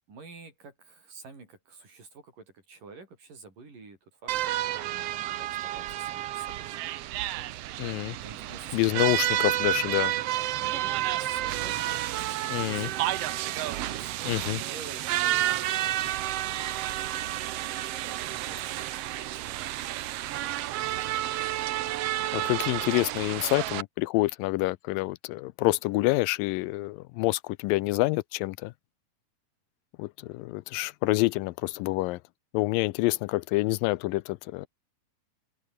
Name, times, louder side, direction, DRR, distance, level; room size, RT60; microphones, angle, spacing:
voice 1, 0.1-6.7 8.2-9.4 10.6-16.1 18.0-18.9 19.2-20.0 20.3-20.6, right 4 dB, 70° right, 9.0 m, -49 dB
sound 1, 4.3-23.8, right 14 dB, 90° right, 1.3 m, -30 dB
voice 2, 7.8-8.2 8.7-10.1 12.5-12.9 14.3-14.6 22.3-28.7 30.0-32.2 32.5-34.7, left 20 dB, 90° left, 2.4 m, -27 dB
open air
omnidirectional pair, 3.9 m